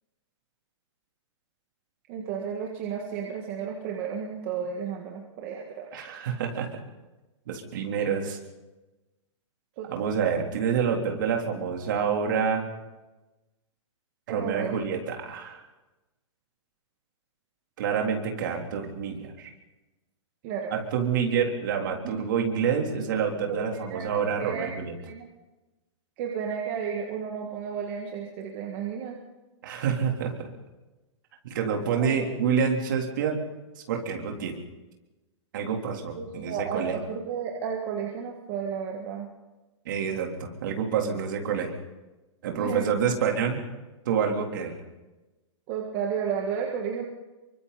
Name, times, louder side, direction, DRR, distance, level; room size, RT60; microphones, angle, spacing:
voice 1, 2.1-5.9 9.8-9.9 14.3-14.7 20.4-20.7 22.0-22.2 22.7-22.8 23.5-25.3 26.2-29.2 32.0-32.2 36.1-39.3 42.6-43.0 45.7-47.1, right 7 dB, 25° right, 1 dB, 1.8 m, -33 dB
voice 2, 5.9-6.8 7.5-8.4 9.9-12.7 14.3-15.6 17.8-19.5 20.7-24.9 29.6-30.5 31.4-33.4 33.9-34.6 35.5-37.0 39.9-41.7 42.4-43.6 44.1-44.8, right 7 dB, 40° right, 1 dB, 3.7 m, -27 dB
28.5 x 24.0 x 4.3 m, 1.1 s
hypercardioid pair, 180°, 16 cm